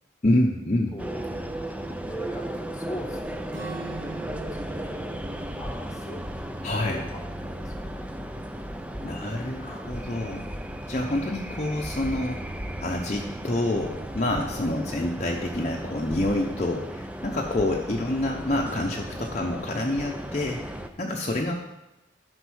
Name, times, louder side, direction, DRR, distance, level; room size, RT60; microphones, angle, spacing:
voice 1, 0.2-0.9 6.6-7.0 9.0-10.5 10.9-12.4 12.8-21.5, left 1 dB, 35° left, 0 dB, 0.7 m, -27 dB
voice 2, 0.9-1.2 1.9-3.6 4.1-5.0 5.4-6.3 6.8-8.4 8.8-9.3, equal, 15° left, 4 dB, 1.0 m, -41 dB
sound 1, 1.0-20.9, right 1 dB, 5° right, 0.5 m, -35 dB
Acoustic guitar / Strum, 3.5-7.5, right 4 dB, 85° right, 3.1 m, -44 dB
11.5 x 5.4 x 6.3 m, 0.93 s
head